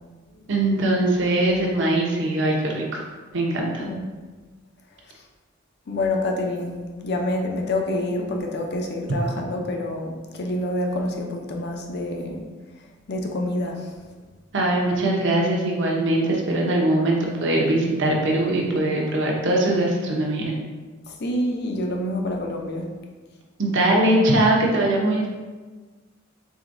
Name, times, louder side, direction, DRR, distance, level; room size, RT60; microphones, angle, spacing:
voice 1, 0.5-3.0 3.3-3.9 14.5-20.6 23.6-25.3, right 1 dB, 65° right, -1 dB, 0.8 m, -21 dB
voice 2, 5.9-6.8 7.0-12.4 13.1-13.9 21.1-22.9, left 1 dB, 55° left, 2 dB, 0.6 m, -27 dB
4.9 x 3.8 x 2.6 m, 1.4 s
head